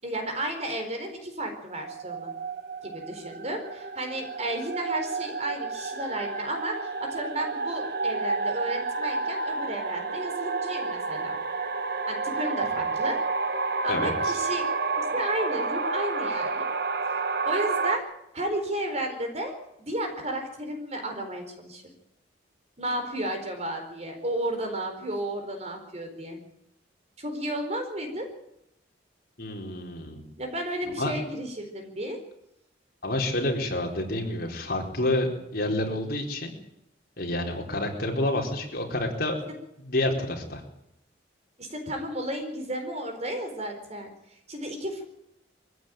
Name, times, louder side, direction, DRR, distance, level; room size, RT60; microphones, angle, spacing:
voice 1, 0.0-2.3 2.8-11.4 12.1-13.2 13.8-14.6 15.1-16.7 17.1-18.0 18.3-19.5 19.8-21.8 22.8-26.4 27.2-28.3 30.4-32.2 41.6-44.1 44.5-45.0, right 1 dB, 35° right, 5 dB, 4.6 m, -33 dB
sound 1, 1.7-18.0, right 4 dB, 60° right, 1.4 m, -30 dB
voice 2, 13.9-14.3 29.4-30.3 30.9-31.1 33.0-36.5 37.2-39.4 39.8-40.6, left 1 dB, 55° left, 1 dB, 4.4 m, -29 dB
22.5 x 15.5 x 9.2 m, 0.80 s
head